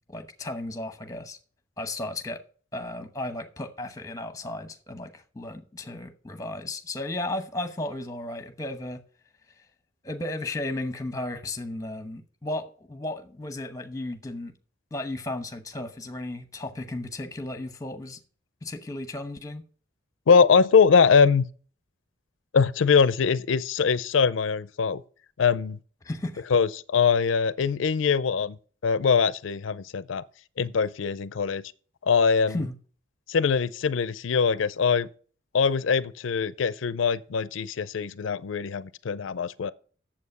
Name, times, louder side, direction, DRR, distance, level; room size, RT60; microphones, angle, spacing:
voice 1, 0.1-1.4 1.8-2.4 2.7-9.0 10.0-14.5 14.9-18.2 18.6-19.6 26.0-26.4 32.4-32.7, left 2 dB, 15° left, 0.9 m, -34 dB
voice 2, 20.3-21.4 22.5-25.0 25.4-25.8 26.5-28.6 28.8-30.2 30.6-31.6 32.0-32.6 33.3-35.1 35.5-39.7, left 5 dB, 90° left, 0.5 m, -22 dB
8.4 x 7.4 x 5.5 m
head